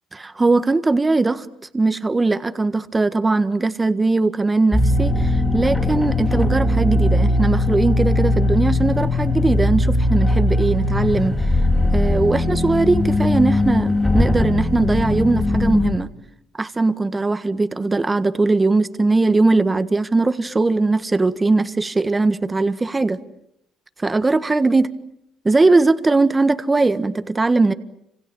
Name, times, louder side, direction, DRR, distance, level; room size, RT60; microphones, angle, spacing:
voice 1, 0.2-1.5 1.7-11.4 11.9-16.1 16.6-23.2 24.0-25.0 25.5-27.7, right 3 dB, 20° right, 1.6 m, -19 dB
sound 1, 4.7-15.9, left 2 dB, 15° left, 3.5 m, -19 dB
29.5 x 27.0 x 7.2 m
cardioid pair, 90°, 0 cm